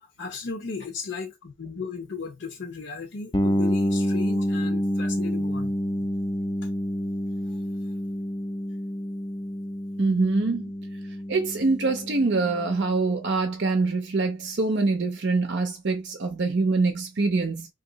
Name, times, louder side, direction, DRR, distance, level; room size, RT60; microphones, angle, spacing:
voice 1, 0.0-5.7 7.4-7.6, left 4 dB, 60° left, 0.8 m, -36 dB
sound 1, 3.3-13.0, equal, 20° left, 0.5 m, -28 dB
voice 2, 10.0-10.7 11.3-17.7, right 3 dB, 55° right, 0.6 m, -24 dB
2.8 x 2.7 x 3.9 m
head